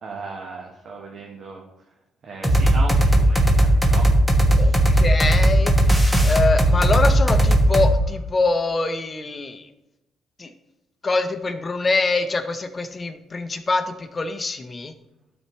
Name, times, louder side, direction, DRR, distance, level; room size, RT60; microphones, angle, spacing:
voice 1, 0.0-1.6 2.2-4.1 4.4-5.0, right 4 dB, 60° right, 0 dB, 1.2 m, -37 dB
sound 1, 2.4-7.9, right 1 dB, 5° right, 1.3 m, -17 dB
voice 2, 4.5-9.7 10.4-10.5 11.0-14.9, left 3 dB, 30° left, 7 dB, 0.8 m, -24 dB
12.5 x 4.3 x 3.2 m, 0.92 s
cardioid pair, 90°, 0 cm